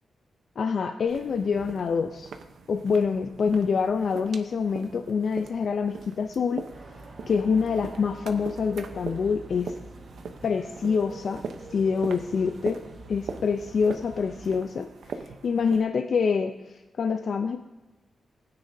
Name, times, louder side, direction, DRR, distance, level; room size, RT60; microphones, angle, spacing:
voice 1, 0.6-2.3 2.7-6.6 7.3-9.7 10.4-11.4 11.7-12.8 13.1-14.9 15.4-17.6, left 5 dB, 60° left, 6 dB, 0.5 m, -26 dB
sound 1, 1.1-15.8, right 5 dB, 90° right, 0.8 m, -42 dB
sound 2, 6.7-14.6, right 2 dB, 45° right, 1.4 m, -45 dB
19.0 x 9.7 x 2.7 m, 1.1 s
wide cardioid pair, 160°, 0 cm